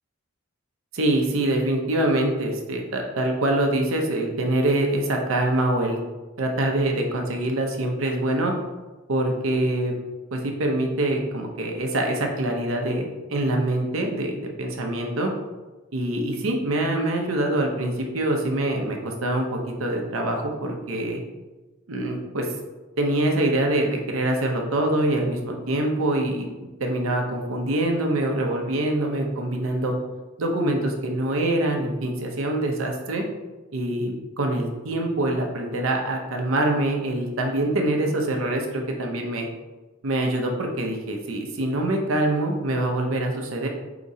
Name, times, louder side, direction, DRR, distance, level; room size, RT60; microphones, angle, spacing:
voice 1, 0.9-6.0 6.4-8.5 9.1-9.9 10.3-15.3 15.9-21.2 21.9-22.5 23.0-26.5 26.8-29.9 30.4-33.2 33.7-39.5 40.0-43.7, right 1 dB, 70° right, 2 dB, 0.7 m, -24 dB
5.0 x 2.9 x 2.7 m, 1.2 s
head